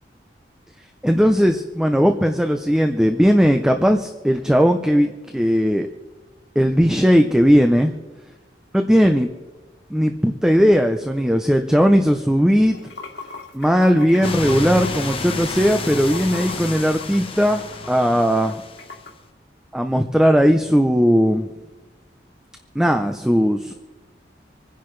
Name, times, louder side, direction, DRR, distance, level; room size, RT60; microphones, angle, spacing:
voice 1, 1.0-5.9 6.6-7.9 8.7-9.3 9.9-12.8 13.5-18.5 19.7-21.5 22.7-23.7, equal, 5° right, 5 dB, 0.6 m, -17 dB
Water / Sink (filling or washing), 12.6-19.1, left 3 dB, 85° left, 2.6 m, -38 dB
sound 1, 14.2-19.0, left 3 dB, 30° left, 1.1 m, -30 dB
26.5 x 10.5 x 3.2 m, 1.2 s
head